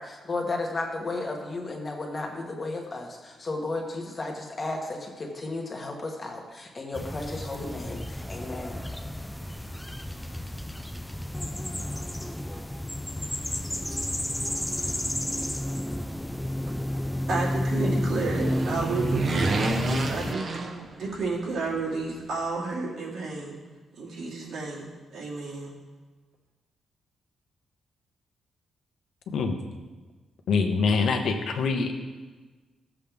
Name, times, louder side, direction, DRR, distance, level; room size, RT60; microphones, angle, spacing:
voice 1, 0.0-8.8 9.5-9.6, left 2 dB, 25° left, 1 dB, 1.3 m, -34 dB
sound 1, 6.9-20.4, left 1 dB, 5° left, 0.4 m, -31 dB
voice 2, 17.3-19.7 20.1-20.6 21.0-23.6 24.0-24.9 25.1-25.7, right 3 dB, 75° right, -4 dB, 2.5 m, -31 dB
sound 2, 17.9-21.4 21.6-21.7, right 3 dB, 35° right, 0.8 m, -30 dB
voice 3, 29.3-29.6 30.5-31.9, left 4 dB, 70° left, 4 dB, 1.1 m, -24 dB
15.0 x 7.4 x 3.5 m, 1.3 s
wide cardioid pair, 160°, 0 cm